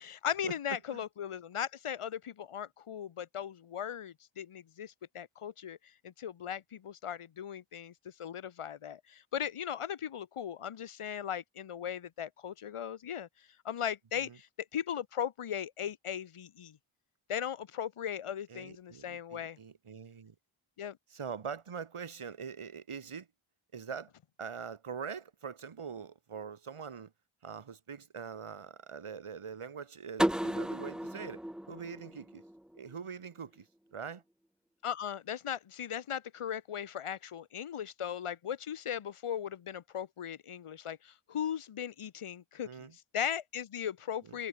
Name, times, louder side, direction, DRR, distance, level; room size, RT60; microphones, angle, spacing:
voice 1, 0.0-5.8 6.0-7.9 8.2-13.3 13.6-16.8 17.3-19.6 20.8-21.0 34.8-42.9 43.1-44.5, left 9 dB, 85° left, 1.0 m, -38 dB
voice 2, 18.5-20.3 21.1-23.3 23.7-24.1 24.4-27.1 27.4-31.4 31.7-32.4 32.7-34.2 42.6-43.0 44.3-44.4, right 6 dB, 85° right, 2.4 m, -43 dB
sound 1, 30.2-33.0, equal, ahead, 0.3 m, -34 dB
wide cardioid pair, 55°, 50 cm